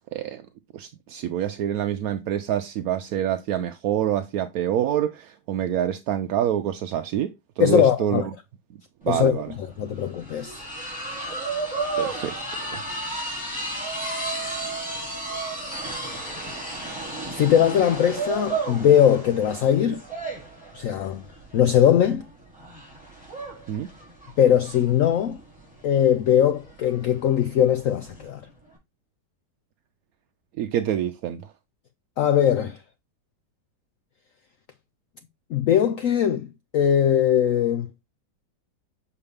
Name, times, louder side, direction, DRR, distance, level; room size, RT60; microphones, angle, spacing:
voice 1, 0.1-0.4 0.7-8.2 9.0-9.5 12.0-12.9 23.7-23.9 30.6-31.4, right 10 dB, 70° right, 0.9 m, -26 dB
voice 2, 7.6-8.3 9.1-10.6 17.3-20.0 20.7-21.2 21.5-22.3 24.4-25.4 25.8-28.4 32.2-32.8 35.5-37.9, left 9 dB, 80° left, 0.7 m, -20 dB
sound 1, 9.1-9.2 9.4-28.3, right 3 dB, 5° right, 4.4 m, -33 dB
6.8 x 4.8 x 3.4 m
omnidirectional pair, 2.0 m